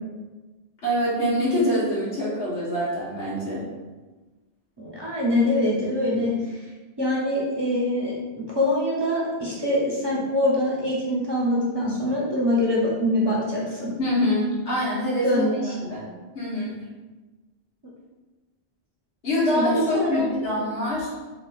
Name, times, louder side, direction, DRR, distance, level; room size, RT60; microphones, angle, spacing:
voice 1, 0.8-3.6 14.0-16.1 16.3-16.7 19.2-21.1, left 1 dB, 75° left, -8 dB, 1.5 m, -25 dB
voice 2, 4.8-6.6 7.0-8.2 8.5-13.9 15.2-15.7 19.5-20.2, left 1 dB, 25° right, -6 dB, 0.8 m, -24 dB
4.8 x 2.5 x 2.4 m, 1.2 s
omnidirectional pair, 1.1 m